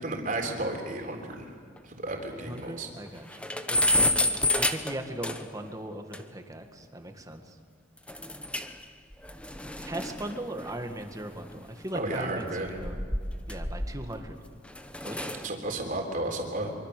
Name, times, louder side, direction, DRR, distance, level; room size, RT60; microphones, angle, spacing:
voice 1, 0.0-1.5 1.9-2.9 11.9-12.7 15.4-16.7, right 2 dB, 45° right, 3 dB, 3.7 m, -33 dB
sound 1, 1.3-1.4 1.8-1.9 2.2-2.3 2.6-2.7 3.1-5.7 6.1-6.2 8.1-8.8 9.1-11.8 12.6-14.2 14.7-15.5, left 1 dB, 5° left, 1.1 m, -30 dB
voice 2, 2.3-3.3 3.7-4.1 4.5-7.6 9.8-13.0 13.5-14.4 15.0-15.5, right 1 dB, 20° right, 5 dB, 1.9 m, -38 dB
24.5 x 24.5 x 6.8 m, 2.1 s
head